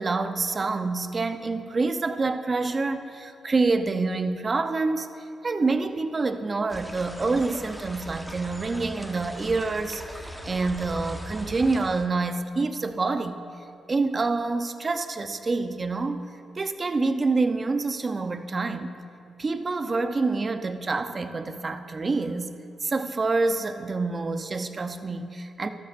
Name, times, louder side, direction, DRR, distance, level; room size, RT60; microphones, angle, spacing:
voice 1, 0.0-5.1 5.4-13.5 13.9-16.2 16.6-18.9 19.4-25.7, right 3 dB, 40° right, 8 dB, 0.6 m, -27 dB
sound 1, 6.7-12.1, equal, ahead, 1.2 m, -40 dB
13.5 x 12.5 x 2.6 m, 2.7 s
cardioid pair, 65°, 0 cm